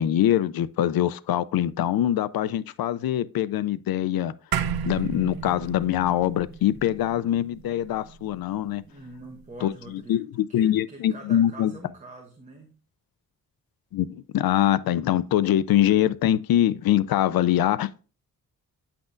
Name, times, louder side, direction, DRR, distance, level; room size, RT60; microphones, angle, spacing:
voice 1, 0.0-4.3 4.8-8.8 9.6-11.7 13.9-18.0, left 12 dB, 80° left, 0.5 m, -23 dB
sound 1, 4.5-9.1, right 7 dB, 75° right, 0.7 m, -33 dB
voice 2, 8.9-10.2 10.5-12.7, right 2 dB, 20° right, 1.2 m, -44 dB
9.8 x 5.9 x 2.5 m
cardioid pair, 110°, 36 cm